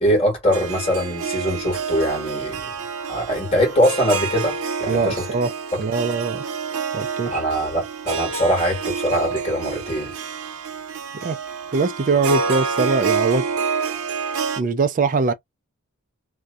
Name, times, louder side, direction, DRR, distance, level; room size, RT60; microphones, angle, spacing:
voice 1, 0.0-2.7 3.1-5.3 5.7-5.8 7.2-10.1, equal, 25° left, 1.3 m, -22 dB
Harp, 0.5-14.6, right 5 dB, 80° right, 0.7 m, -28 dB
voice 2, 4.9-5.5 5.8-6.4 6.9-7.4 11.1-11.4 11.7-13.4 14.6-15.3, right 4 dB, 35° right, 0.3 m, -22 dB
2.6 x 2.2 x 2.3 m
head